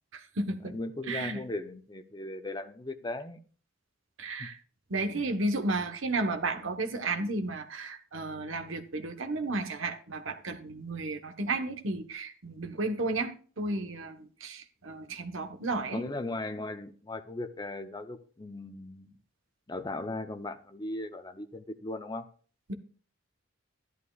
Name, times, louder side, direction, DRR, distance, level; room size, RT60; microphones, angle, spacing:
voice 1, 0.1-0.7 1.1-1.4 4.2-4.6 4.9-13.3 13.6-16.0, right 2 dB, 60° right, 6 dB, 1.1 m, -33 dB
voice 2, 0.6-3.4 4.4-4.5 5.1-5.3 15.9-19.2 19.7-22.3, left 2 dB, 20° left, 8 dB, 0.6 m, -38 dB
13.0 x 11.0 x 2.4 m, 0.41 s
head